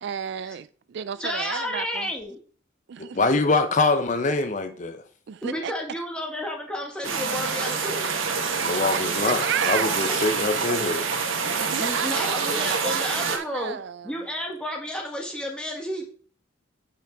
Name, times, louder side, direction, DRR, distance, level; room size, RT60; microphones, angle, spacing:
voice 1, 0.0-2.1 2.9-3.3 5.3-5.7 8.7-9.9 11.7-14.2, right 8 dB, 60° right, 0.4 m, -32 dB
voice 2, 1.2-2.4 5.4-8.1 11.5-13.8 14.0-16.1, left 1 dB, 5° left, 1.7 m, -31 dB
voice 3, 3.0-5.0 8.6-11.1, left 3 dB, 40° left, 0.7 m, -24 dB
sound 1, 7.0-13.4, right 5 dB, 85° right, 1.3 m, -26 dB
8.6 x 5.8 x 3.5 m
head